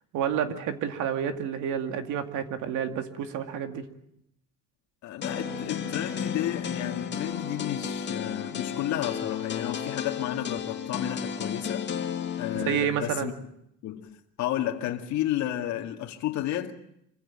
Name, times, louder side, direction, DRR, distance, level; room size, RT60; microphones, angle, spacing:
voice 1, 0.1-3.9 12.5-13.3, right 8 dB, 60° right, 2.3 m, -29 dB
voice 2, 5.0-11.9 12.4-13.5 13.8-14.1 14.4-16.7, left 12 dB, 60° left, 2.2 m, -32 dB
sound 1, 5.2-12.8, left 7 dB, 30° left, 2.2 m, -33 dB
26.0 x 15.5 x 8.8 m
cardioid pair, 150°, 33 cm